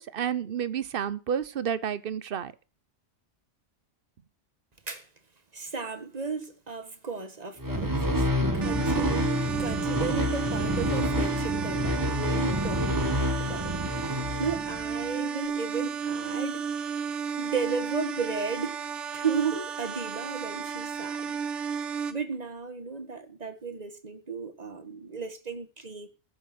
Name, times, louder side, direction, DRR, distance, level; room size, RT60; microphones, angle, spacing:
voice 1, 0.0-2.5, right 8 dB, 55° right, 0.9 m, -30 dB
voice 2, 5.5-17.0 17.4-21.4 22.1-26.1, right 5 dB, 35° right, 1.7 m, -35 dB
sound 1, 7.6-15.0, equal, 15° right, 1.5 m, -28 dB
sound 2, 8.6-22.1, right 6 dB, 80° right, 1.5 m, -33 dB
14.5 x 6.5 x 7.7 m
omnidirectional pair, 1.2 m